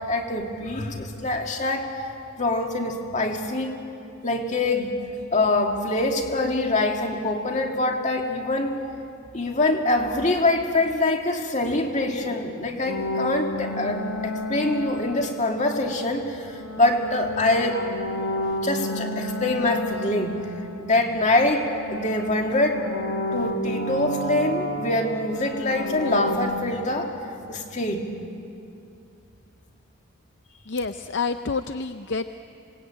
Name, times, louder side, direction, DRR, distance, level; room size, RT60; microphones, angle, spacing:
voice 1, 0.0-2.1 2.4-3.7 4.2-4.9 5.3-8.7 9.3-17.8 18.6-20.4 20.8-22.8 23.3-27.1 27.5-28.1, left 2 dB, 35° left, 2 dB, 2.2 m, -24 dB
sound 1, 12.9-15.8 16.5-21.3 21.5-26.4, left 1 dB, 80° left, 2.4 m, -31 dB
voice 2, 30.7-32.3, left 4 dB, 55° left, 9 dB, 0.6 m, -28 dB
27.5 x 20.0 x 8.9 m, 2.7 s
head